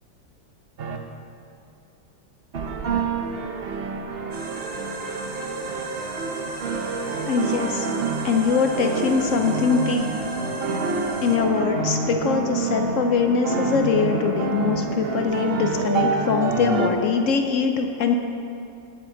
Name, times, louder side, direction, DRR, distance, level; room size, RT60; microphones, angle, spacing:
sound 1, 0.8-1.0 2.5-16.9, right 4 dB, 90° right, 0.5 m, -28 dB
sound 2, 4.3-11.4, right 2 dB, 50° right, 1.6 m, -36 dB
voice 1, 7.3-7.9 8.2-10.3 11.2-18.1, left 5 dB, 85° left, 5 dB, 0.7 m, -22 dB
17.5 x 8.4 x 3.8 m, 2.6 s
omnidirectional pair, 2.1 m